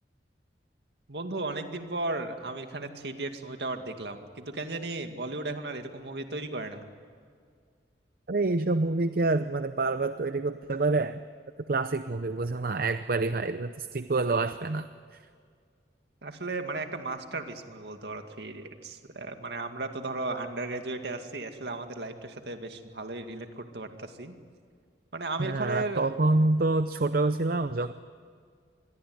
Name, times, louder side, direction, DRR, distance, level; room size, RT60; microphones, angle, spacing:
voice 1, 1.1-6.9 16.2-24.3 25.1-26.1, right 2 dB, 70° right, 6 dB, 2.2 m, -35 dB
voice 2, 8.3-11.2 11.7-14.9 25.4-27.9, right 2 dB, 55° right, 11 dB, 0.7 m, -27 dB
27.0 x 22.0 x 9.5 m, 2.1 s
head